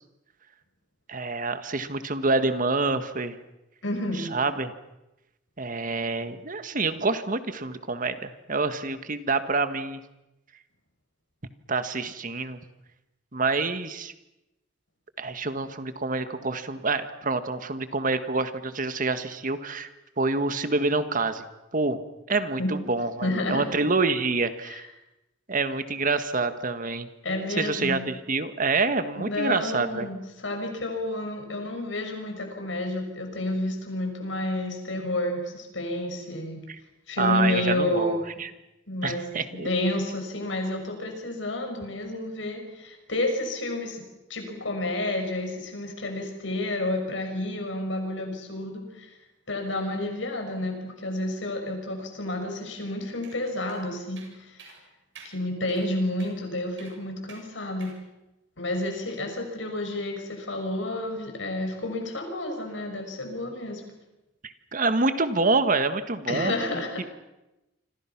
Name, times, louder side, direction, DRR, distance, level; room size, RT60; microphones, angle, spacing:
voice 1, 1.1-3.4 4.2-4.7 5.6-10.0 11.7-12.6 13.3-14.1 15.2-19.9 20.2-21.4 21.7-22.0 22.3-24.9 25.5-27.1 27.6-30.1 36.7-36.8 37.2-38.5 39.0-39.7 64.4-66.5, right 3 dB, 45° right, 10 dB, 1.6 m, -27 dB
voice 2, 3.8-4.4 22.6-22.7 23.2-23.7 24.7-24.8 27.2-28.1 29.2-36.6 37.1-38.2 38.9-49.1 49.5-54.6 55.2-57.9 58.6-63.8 66.3-67.0, left 1 dB, 85° left, 4 dB, 6.5 m, -30 dB
sound 1, 53.2-53.4 53.7-53.8 54.2-54.3 54.6-54.8 55.2-55.3 55.7-55.9 56.2-56.3 56.8-57.0 57.3-57.4 57.8-58.0, right 5 dB, 75° right, 7.4 m, -48 dB
28.5 x 25.5 x 6.0 m, 0.97 s
head